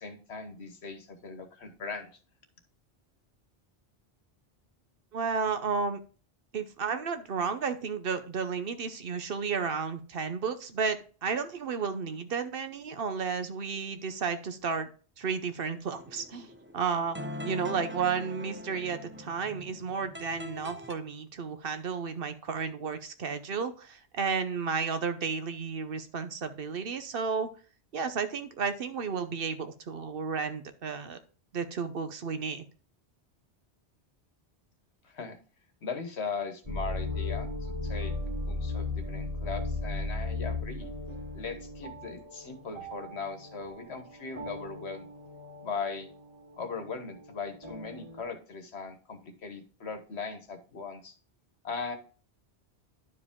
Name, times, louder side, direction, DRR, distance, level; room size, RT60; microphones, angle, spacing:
voice 1, 0.0-2.1 35.0-35.4 35.8-40.9 41.3-45.1 45.6-46.1 46.6-51.1 51.6-52.0, left 5 dB, 75° left, 7 dB, 1.4 m, -39 dB
voice 2, 5.1-6.0 6.5-14.9 15.2-16.5 16.7-17.2 17.4-27.5 27.9-31.2 31.5-32.6, right 5 dB, 60° right, 9 dB, 0.9 m, -32 dB
sound 1, 15.9-20.9, equal, 15° right, 0.5 m, -42 dB
sound 2, 36.6-48.2, left 2 dB, 30° right, 3.3 m, -37 dB
10.5 x 4.9 x 3.6 m, 0.38 s
omnidirectional pair, 1.1 m